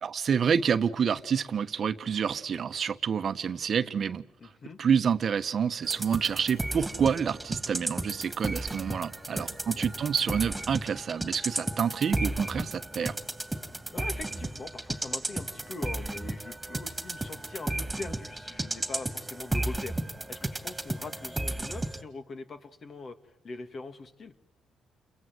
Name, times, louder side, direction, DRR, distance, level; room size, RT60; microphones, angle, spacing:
voice 1, 0.0-4.2 4.8-13.2, right 7 dB, 50° right, 1.2 m, -28 dB
voice 2, 4.4-4.8 9.3-9.9 13.9-20.0 20.3-23.2 23.4-24.3, left 3 dB, 45° left, 2.4 m, -42 dB
sound 1, 5.8-22.0, right 2 dB, 10° right, 2.6 m, -34 dB
29.5 x 22.5 x 7.8 m
cardioid pair, 90°, 0 cm